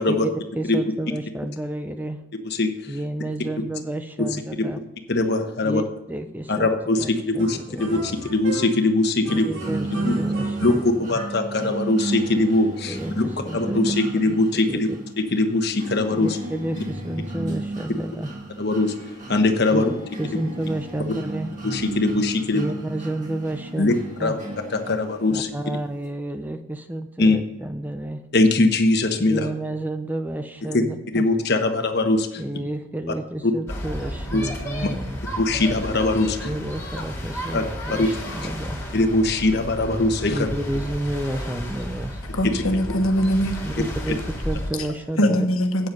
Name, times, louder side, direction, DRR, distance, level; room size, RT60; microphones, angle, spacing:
voice 1, 0.1-2.2 2.9-4.8 5.6-6.7 7.0-7.1 7.3-8.0 9.2-11.1 12.9-14.0 14.2-14.4 14.7-15.0 16.1-18.3 19.7-19.8 20.2-21.5 22.5-24.4 25.3-28.2 29.3-31.3 32.4-35.2 36.4-39.0 40.3-42.2 43.6-44.2 44.4-45.5, right 1 dB, 10° right, 0.4 m, -30 dB
voice 2, 5.1-5.8 6.5-9.5 10.0-10.1 10.6-13.2 13.5-14.9 15.3-16.4 18.6-18.9 19.3-19.9 21.6-22.6 23.8-23.9 24.2-24.4 24.7-25.5 27.2-27.4 28.3-29.5 30.7-30.8 31.1-32.4 33.4-33.5 34.3-34.4 34.8-34.9 35.4-36.5 37.5-38.1 38.9-40.5, left 2 dB, 50° left, 1.0 m, -21 dB
sound 1, 7.4-8.9 9.2-11.5, right 1 dB, 75° right, 2.5 m, -36 dB
sound 2, 9.6-25.6, right 2 dB, 35° right, 2.0 m, -33 dB
sound 3, 33.7-44.7, equal, 15° left, 2.2 m, -32 dB
voice 3, 42.3-43.6 45.2-45.9, equal, 80° left, 1.2 m, -21 dB
8.9 x 7.9 x 5.3 m
head